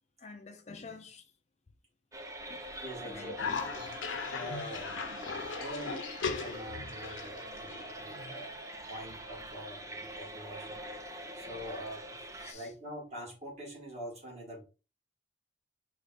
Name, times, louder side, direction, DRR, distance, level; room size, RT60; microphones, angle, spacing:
voice 1, 0.2-1.2 2.5-2.6 3.0-3.6 12.4-12.7, left 4 dB, 35° left, 0.4 m, -48 dB
sound 1, 2.1-12.5, right 1 dB, 15° right, 0.5 m, -44 dB
voice 2, 2.8-3.8 4.3-6.0 6.3-12.1 12.5-14.6, equal, 35° right, 1.8 m, -45 dB
Cough, 3.4-8.4, left 5 dB, 85° left, 0.7 m, -38 dB
4.9 x 2.4 x 4.1 m
head